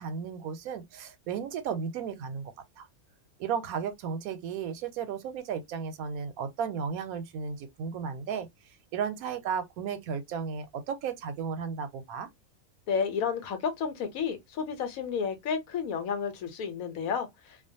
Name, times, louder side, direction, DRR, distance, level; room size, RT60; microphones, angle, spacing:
voice 1, 0.0-2.9 3.4-8.5 8.9-12.3, right 6 dB, 85° right, 1.1 m, -34 dB
voice 2, 12.9-17.7, left 6 dB, 80° left, 1.1 m, -31 dB
2.4 x 2.2 x 2.6 m
omnidirectional pair, 1.5 m